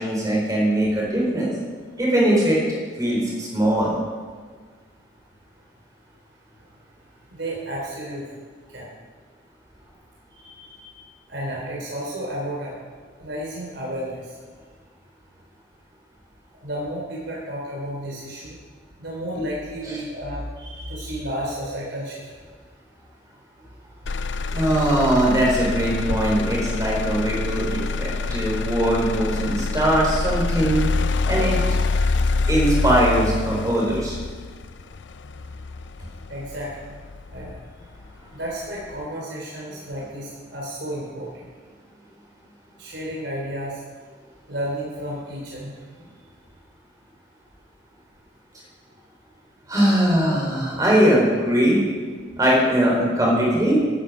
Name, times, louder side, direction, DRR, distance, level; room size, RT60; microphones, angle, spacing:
voice 1, 0.0-1.5 2.0-2.6 3.0-3.9 24.5-30.9 31.2-31.6 32.4-34.2 49.7-51.8 52.4-53.9, right 1 dB, 20° right, -4 dB, 4.5 m, -20 dB
voice 2, 7.3-8.3 8.7-8.9 10.3-12.7 13.2-14.3 16.6-18.6 19.0-22.2 27.6-27.8 36.3-37.0 37.3-37.6 38.3-41.4 42.8-43.8 44.5-45.7, right 1 dB, 75° right, -4 dB, 3.4 m, -32 dB
Motor vehicle (road), 24.1-38.1 38.5-39.0, left 3 dB, 75° left, 0.5 m, -26 dB
15.0 x 12.5 x 5.2 m, 1.5 s
head